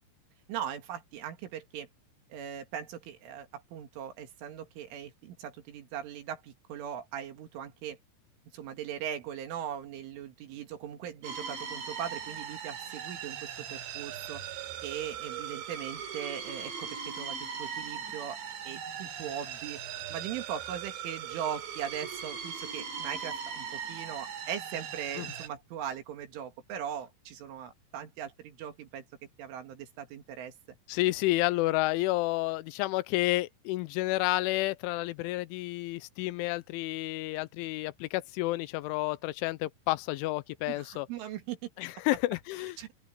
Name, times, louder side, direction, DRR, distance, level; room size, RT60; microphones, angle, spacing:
voice 1, 0.5-1.9 2.3-8.0 8.5-14.4 14.8-18.4 18.7-19.8 20.1-29.0 29.4-30.5 40.7-41.6 42.8-42.9, right 9 dB, 85° right, 5.0 m, -39 dB
sound 1, 11.2-25.5, right 7 dB, 65° right, 5.4 m, -39 dB
voice 2, 30.9-41.1 41.8-42.8, left 19 dB, 85° left, 3.1 m, -30 dB
open air
omnidirectional pair, 5.4 m